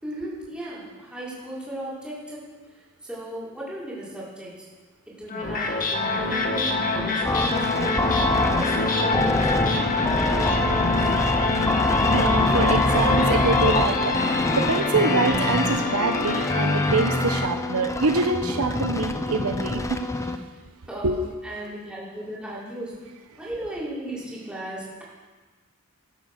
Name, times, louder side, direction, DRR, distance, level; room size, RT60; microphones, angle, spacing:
voice 1, 0.0-2.5 3.0-4.7 5.1-8.0 8.5-11.3 20.9-23.0 23.4-25.0, right 1 dB, 5° right, -8 dB, 6.0 m, -36 dB
sound 1, 5.3-17.5, left 3 dB, 40° left, 1.8 m, -26 dB
sound 2, 7.2-20.4, left 2 dB, 15° left, 0.8 m, -25 dB
voice 2, 12.0-20.0 21.0-21.2, right 3 dB, 75° right, 6 dB, 1.1 m, -25 dB
16.5 x 11.5 x 6.8 m, 1.3 s
head